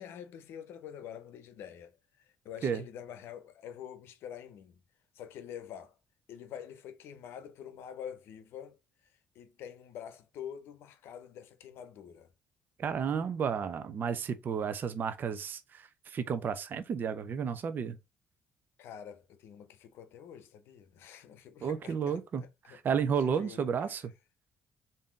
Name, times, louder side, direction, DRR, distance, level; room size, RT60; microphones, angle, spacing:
voice 1, 0.0-4.8 5.1-6.0 6.3-8.8 9.0-12.3 18.8-22.8 23.2-23.7, left 9 dB, 75° left, 0.7 m, -46 dB
voice 2, 12.8-18.0 21.6-24.0, right 7 dB, 50° right, 0.5 m, -32 dB
3.6 x 2.7 x 3.5 m
supercardioid pair, 65°, 4 cm